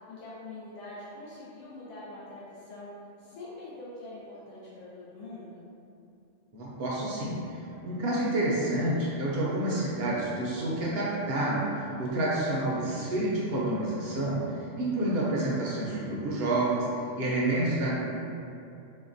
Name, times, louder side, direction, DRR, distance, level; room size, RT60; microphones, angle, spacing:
voice 1, 0.1-2.9 3.2-5.6, left 2 dB, 85° left, -8 dB, 1.0 m, -44 dB
voice 2, 6.5-16.9 17.2-18.1, right 1 dB, 65° right, -5 dB, 0.7 m, -29 dB
4.2 x 2.1 x 2.5 m, 2.6 s
omnidirectional pair, 1.3 m